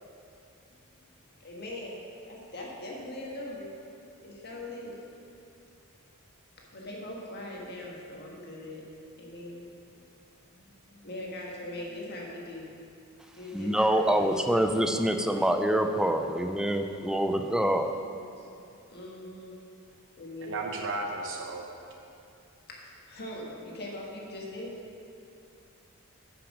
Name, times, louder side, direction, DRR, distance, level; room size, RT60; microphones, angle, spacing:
voice 1, 1.4-3.7 4.2-5.0 6.7-8.8 9.2-9.7 10.5-12.7 13.3-14.6 18.1-18.6 18.9-19.6 20.2-20.6 22.7-24.7, left 1 dB, 50° left, -3 dB, 1.6 m, -41 dB
voice 2, 13.5-17.9, right 1 dB, 5° right, 6 dB, 0.4 m, -26 dB
voice 3, 20.4-21.7, right 3 dB, 60° right, 1 dB, 0.9 m, -34 dB
9.9 x 5.9 x 5.3 m, 2.6 s
head